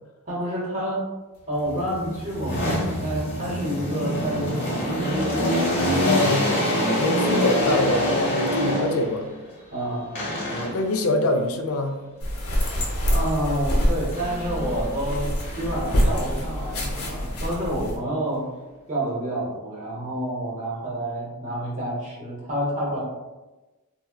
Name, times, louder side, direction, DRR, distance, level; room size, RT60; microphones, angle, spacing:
voice 1, 0.3-1.0 1.5-6.3 9.7-10.3 13.0-18.5 18.9-23.0, right 1 dB, 35° right, -4 dB, 0.8 m, -29 dB
sound 1, 1.6-9.3 10.2-11.0 14.1-14.9 15.4-17.8, equal, 50° left, 1.0 m, -26 dB
voice 2, 6.0-9.3 10.5-12.0, left 2 dB, 70° left, 5 dB, 0.4 m, -25 dB
sound 2, 12.2-18.0, equal, 90° left, 0.7 m, -26 dB
3.5 x 2.1 x 2.2 m, 1.1 s
head